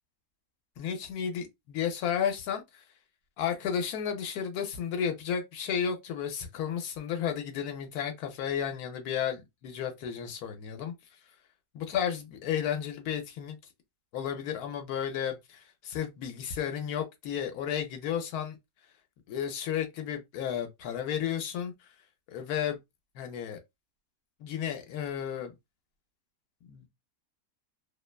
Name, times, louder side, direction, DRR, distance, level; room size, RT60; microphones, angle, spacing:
voice 1, 0.8-2.8 3.4-10.9 11.7-13.6 14.1-18.6 19.3-21.9 22.3-22.8 23.1-23.6 24.4-25.5 26.6-26.9, left 8 dB, 85° left, 1.1 m, -33 dB
2.7 x 2.1 x 2.2 m
omnidirectional pair, 1.5 m